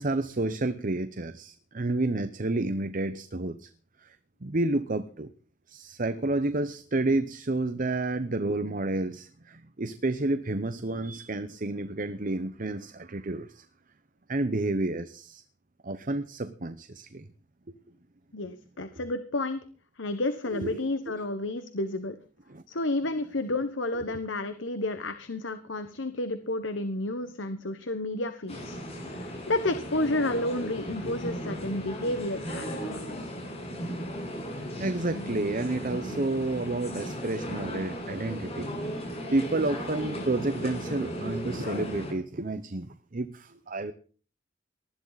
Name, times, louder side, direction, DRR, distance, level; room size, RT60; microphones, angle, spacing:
voice 1, 0.0-3.7 4.0-4.2 4.4-5.3 5.7-13.6 14.3-15.4 15.8-17.3 17.7-17.8 20.5-20.9 22.5-22.6 34.8-43.9, right 2 dB, 45° right, 11 dB, 0.9 m, -30 dB
voice 2, 18.3-19.6 20.0-22.2 22.7-28.8 29.1-33.2, left 2 dB, 75° left, 10 dB, 1.3 m, -31 dB
sound 1, 28.5-42.1, equal, 35° left, 7.6 m, -36 dB
19.5 x 14.0 x 4.1 m, 0.42 s
head